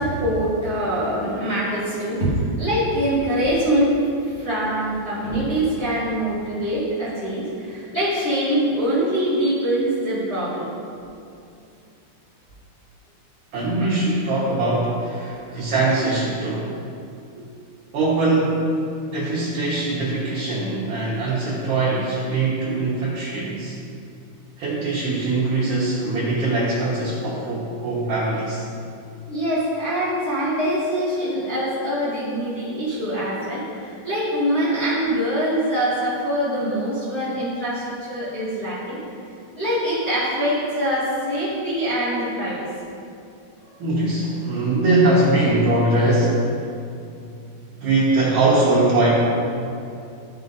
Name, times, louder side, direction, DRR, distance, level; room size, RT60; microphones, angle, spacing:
voice 1, 0.0-10.7 13.8-13.9 15.3-15.6 17.3-17.4 19.0-19.1 29.3-39.0 39.5-42.7 43.6-43.7, equal, 75° left, -12 dB, 0.8 m, -24 dB
voice 2, 13.5-16.7 17.9-18.7 19.1-23.7 24.6-28.6 43.8-46.5 47.8-49.1, right 2 dB, 65° right, -9 dB, 2.0 m, -21 dB
14.0 x 5.7 x 2.7 m, 2.5 s
omnidirectional pair, 5.6 m